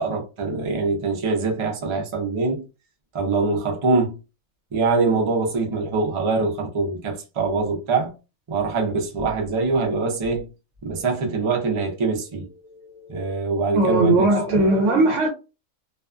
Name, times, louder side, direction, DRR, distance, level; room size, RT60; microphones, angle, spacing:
voice 1, 0.0-2.6 3.1-4.2 4.7-8.1 8.5-10.5 10.8-14.7, right 3 dB, 45° right, 0.4 m, -24 dB
voice 2, 13.7-15.3, right 2 dB, 65° right, 0.9 m, -18 dB
2.5 x 2.3 x 2.4 m
omnidirectional pair, 1.5 m